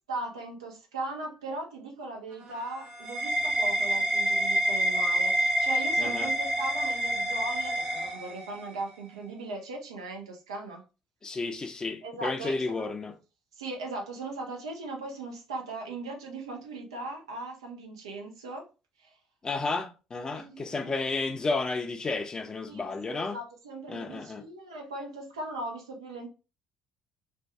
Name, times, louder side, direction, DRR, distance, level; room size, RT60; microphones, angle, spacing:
voice 1, 0.1-10.8 12.0-12.9 13.6-18.7 19.0-19.2 20.3-20.9 22.7-26.3, right 2 dB, 75° right, 0.6 m, -38 dB
sound 1, 2.3-8.8, right 1 dB, 40° right, 0.7 m, -28 dB
voice 2, 6.0-6.3 11.2-13.2 19.4-23.4 23.9-24.4, left 3 dB, 25° left, 0.5 m, -32 dB
2.6 x 2.2 x 3.3 m
figure-of-eight pair, 50°, 3 cm